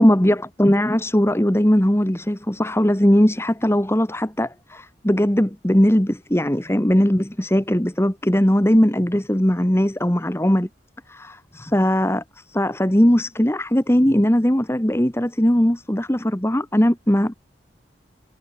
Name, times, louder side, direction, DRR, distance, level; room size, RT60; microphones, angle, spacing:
voice 1, 0.0-10.7 11.1-17.3, equal, 15° left, 1.5 m, -19 dB
head